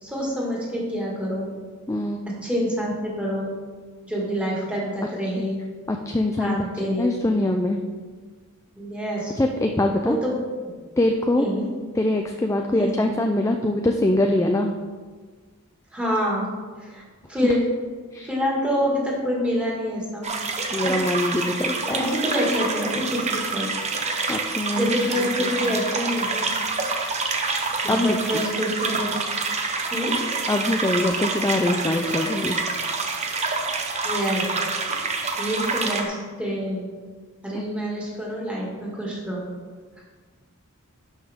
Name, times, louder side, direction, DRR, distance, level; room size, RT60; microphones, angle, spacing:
voice 1, 0.0-1.5 2.3-3.5 4.1-5.6 6.4-7.1 8.8-9.3 10.0-10.3 11.4-11.7 12.7-13.0 15.9-16.5 16.8-17.0 17.3-17.7 18.2-20.3 20.8-21.0 21.8-23.7 24.7-26.5 27.8-29.1 29.9-30.2 34.0-34.5 35.4-36.8 37.4-39.5, equal, 5° right, -5 dB, 2.1 m, -26 dB
voice 2, 1.9-2.2 5.4-5.5 5.9-7.8 9.4-10.2 11.0-11.5 12.0-14.8 18.1-18.3 20.7-22.1 24.3-24.9 25.2-25.8 27.9-28.4 30.5-32.6, left 1 dB, 15° left, 3 dB, 0.4 m, -23 dB
sound 1, 20.2-36.0, right 4 dB, 30° right, 0.8 m, -27 dB
11.5 x 5.4 x 3.6 m, 1.5 s
head